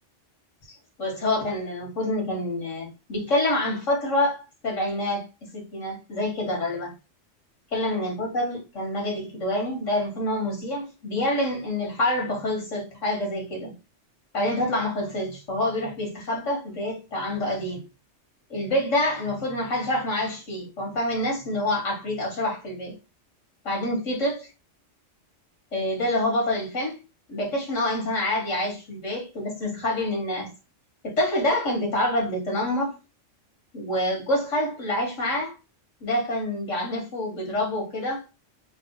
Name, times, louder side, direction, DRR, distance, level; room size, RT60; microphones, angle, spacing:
voice 1, 0.7-6.9 7.7-13.7 14.3-17.8 18.5-23.0 23.6-24.5 25.7-27.0 27.3-30.5 31.0-32.9 33.7-35.6 36.0-38.3, left 1 dB, 80° left, 2.1 m, -27 dB
3.6 x 2.5 x 3.9 m
omnidirectional pair, 1.3 m